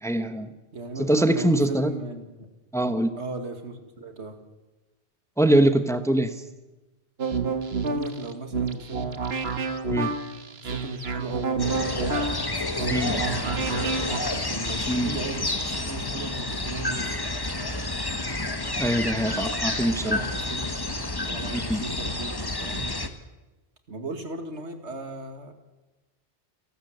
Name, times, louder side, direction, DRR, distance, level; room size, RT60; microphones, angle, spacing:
voice 1, 0.0-0.5 1.0-1.9 2.7-3.1 5.4-6.3 9.9-10.1 12.9-13.1 14.9-15.1 18.8-20.2 21.5-21.8, right 1 dB, 5° left, 9 dB, 1.1 m, -23 dB
voice 2, 0.7-2.5 3.2-4.4 7.8-9.1 10.6-11.9 12.5-13.8 14.3-17.2 20.0-20.7 21.2-23.0 23.9-25.5, right 2 dB, 85° right, 6 dB, 2.4 m, -37 dB
sound 1, 7.2-14.2, right 4 dB, 65° right, 1.6 m, -29 dB
sound 2, 11.6-23.1, left 2 dB, 20° left, 1.3 m, -30 dB
28.5 x 12.5 x 7.9 m, 1.1 s
omnidirectional pair, 1.1 m